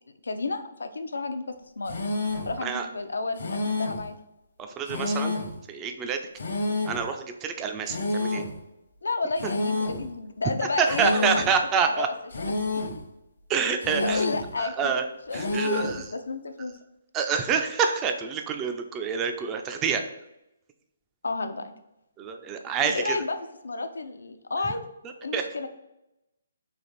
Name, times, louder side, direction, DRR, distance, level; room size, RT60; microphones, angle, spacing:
voice 1, 0.2-2.0 2.5-4.2 9.0-11.6 11.9-12.9 14.0-15.0 15.3-16.8 21.2-21.7 22.8-23.4 23.6-24.8 25.2-25.7, left 3 dB, 80° left, 8 dB, 0.4 m, -32 dB
sound 1, 1.9-2.6 3.4-4.1 4.9-5.6 6.4-7.1 7.9-8.6 9.4-10.1 10.9-11.6 12.3-13.0 13.8-14.5 15.3-16.0, left 2 dB, 65° left, 0.8 m, -29 dB
voice 2, 4.6-5.4 5.7-6.2 6.9-8.4 10.8-12.1 13.5-14.2 14.6-15.0 15.3-16.1 17.1-20.0 22.2-23.2 25.3-25.5, right 6 dB, 20° right, 5 dB, 0.4 m, -27 dB
3.3 x 2.5 x 4.0 m, 0.88 s
hypercardioid pair, 145°, 0 cm